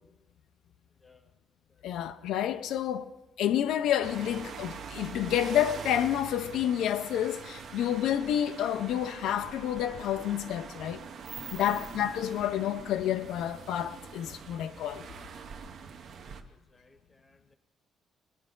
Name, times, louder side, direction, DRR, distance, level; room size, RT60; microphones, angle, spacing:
voice 1, 1.8-3.1 3.4-11.0 11.5-15.0, left 10 dB, 80° left, 0.4 m, -29 dB
sound 1, 4.0-16.4, right 6 dB, 50° right, 0.8 m, -44 dB
voice 2, 16.2-17.6, left 2 dB, 15° left, 0.9 m, -57 dB
19.5 x 10.0 x 3.7 m
cardioid pair, 165°, 0 cm